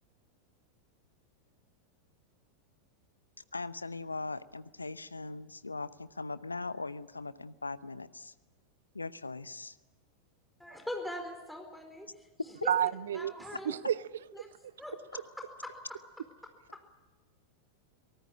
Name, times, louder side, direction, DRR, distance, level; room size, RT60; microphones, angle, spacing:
voice 1, 3.5-8.3 8.9-9.8, left 3 dB, 80° left, 17 dB, 0.8 m, -40 dB
voice 2, 10.6-12.3 12.6-12.7 13.1-13.7 14.3-14.5 14.8-16.0 16.7-16.9, left 1 dB, 5° left, 4 dB, 4.6 m, -42 dB
voice 3, 12.7-13.3 13.7-14.0, right 10 dB, 60° right, 20 dB, 0.7 m, -29 dB
24.0 x 18.5 x 8.8 m, 1.2 s
figure-of-eight pair, 90°, 0 cm